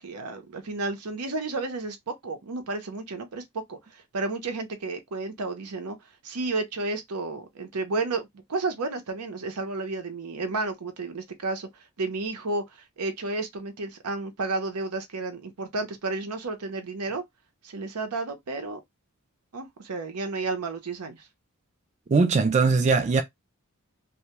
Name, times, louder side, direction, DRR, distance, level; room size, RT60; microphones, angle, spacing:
voice 1, 0.0-3.4 3.7-6.0 6.2-17.2 17.6-18.8 19.5-21.3, right 3 dB, 90° right, 0.7 m, -32 dB
voice 2, 22.1-23.2, right 4 dB, 30° right, 0.3 m, -20 dB
2.2 x 2.1 x 2.8 m
head